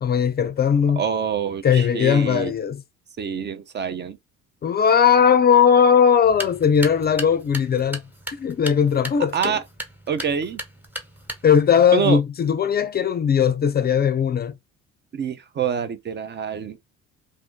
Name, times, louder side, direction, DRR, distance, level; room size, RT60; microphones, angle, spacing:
voice 1, 0.0-1.0 1.6-2.8 4.6-8.0 8.4-9.6 11.4-14.6, left 7 dB, 35° left, 0.4 m, -18 dB
voice 2, 1.0-2.5 3.2-4.2 9.3-9.6 10.1-10.6 11.9-12.2 15.1-16.8, right 7 dB, 35° right, 0.6 m, -26 dB
sound 1, 6.2-11.7, equal, 5° right, 1.2 m, -36 dB
2.5 x 2.5 x 3.6 m
supercardioid pair, 65°, 30 cm